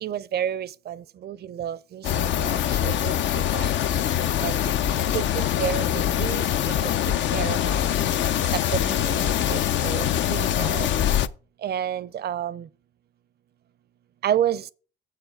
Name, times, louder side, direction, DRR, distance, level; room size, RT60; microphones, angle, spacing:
voice 1, 0.0-3.7 4.4-4.6 5.1-6.8 7.1-7.6 8.5-10.9 11.6-12.7 14.2-14.6, right 10 dB, 55° right, 0.5 m, -30 dB
sound 1, 2.0-11.3, left 10 dB, 70° left, 0.5 m, -24 dB
7.2 x 4.9 x 6.8 m
cardioid pair, 90°, 20 cm